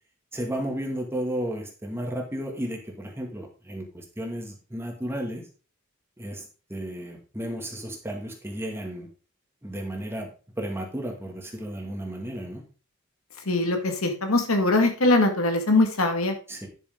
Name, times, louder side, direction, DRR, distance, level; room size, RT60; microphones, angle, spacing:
voice 1, 0.3-5.4 6.2-9.1 9.6-10.3 10.6-12.6 16.5-16.7, right 1 dB, 10° right, 1 dB, 2.1 m, -33 dB
voice 2, 13.5-16.3, left 2 dB, 85° left, 5 dB, 1.9 m, -22 dB
10.5 x 6.8 x 3.8 m, 0.36 s
head